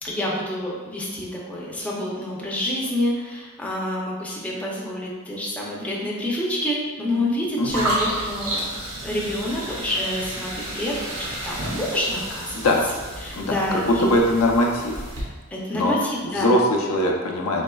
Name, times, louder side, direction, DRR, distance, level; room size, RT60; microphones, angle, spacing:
voice 1, 0.0-8.6 9.0-12.7 13.2-14.1 15.5-16.5, left 1 dB, 5° left, -5 dB, 0.6 m, -28 dB
sound 1, 7.7-15.2, right 1 dB, 80° right, 1.0 m, -31 dB
voice 2, 12.5-12.8 13.4-15.0 15.7-15.9 16.3-17.6, left 1 dB, 70° left, -1 dB, 0.5 m, -21 dB
4.3 x 3.0 x 2.3 m, 1.3 s
head